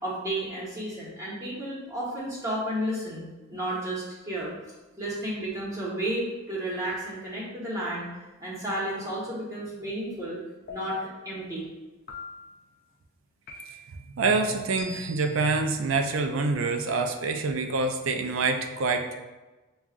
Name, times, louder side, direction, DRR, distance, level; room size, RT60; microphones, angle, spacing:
voice 1, 0.0-4.5 5.0-8.1 8.4-10.4 10.7-11.0 11.2-11.6, right 1 dB, 15° right, -7 dB, 1.1 m, -32 dB
sound 1, 10.7-11.3 12.1-12.7 13.5-14.0 14.8-15.3, left 2 dB, 45° left, 0.5 m, -43 dB
voice 2, 14.1-19.1, right 3 dB, 75° right, 6 dB, 0.5 m, -26 dB
7.0 x 2.4 x 2.4 m, 1.2 s
head